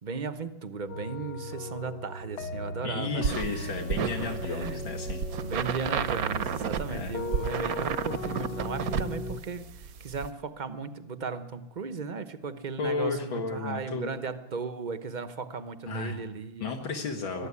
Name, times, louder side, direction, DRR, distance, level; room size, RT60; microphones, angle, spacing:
voice 1, 0.0-3.7 4.2-4.8 5.4-16.8 17.4-17.5, right 5 dB, 40° right, 10 dB, 0.7 m, -36 dB
sound 1, 0.9-9.4, left 1 dB, 60° left, 1.5 m, -37 dB
voice 2, 2.8-5.2 6.9-7.2 12.8-14.1 15.9-16.2 16.6-17.5, left 4 dB, 80° left, 2 dB, 2.4 m, -33 dB
sound 2, 3.2-10.3, right 7 dB, 55° right, 1.2 m, -32 dB
22.5 x 13.0 x 9.7 m, 0.97 s
omnidirectional pair, 2.1 m